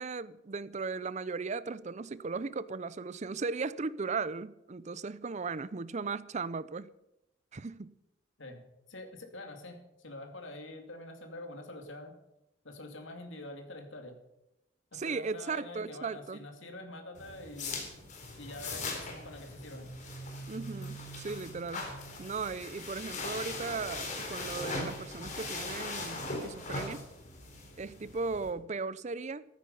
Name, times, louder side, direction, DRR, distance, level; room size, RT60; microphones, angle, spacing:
voice 1, 0.0-6.9 7.5-7.9 14.9-16.4 20.5-21.9 22.2-27.1 27.8-29.4, right 4 dB, 35° right, 0.5 m, -37 dB
voice 2, 8.4-12.1 12.6-14.2 14.9-17.8 18.4-19.9, left 1 dB, 75° left, 2.6 m, -46 dB
sound 1, 17.1-28.5, left 2 dB, 40° left, 3.9 m, -40 dB
14.5 x 13.5 x 5.4 m
head